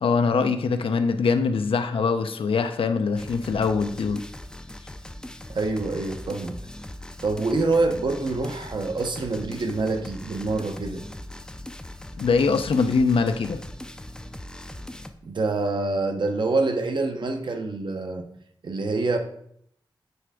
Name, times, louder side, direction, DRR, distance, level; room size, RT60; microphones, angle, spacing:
voice 1, 0.0-4.2 12.2-13.6, left 5 dB, 85° left, 0.6 m, -23 dB
sound 1, 3.2-15.1, left 1 dB, 10° left, 0.4 m, -40 dB
voice 2, 5.5-6.6 7.2-11.0 15.2-18.3 18.6-19.2, right 3 dB, 60° right, 0.8 m, -26 dB
7.8 x 3.3 x 4.8 m
wide cardioid pair, 120°, 9 cm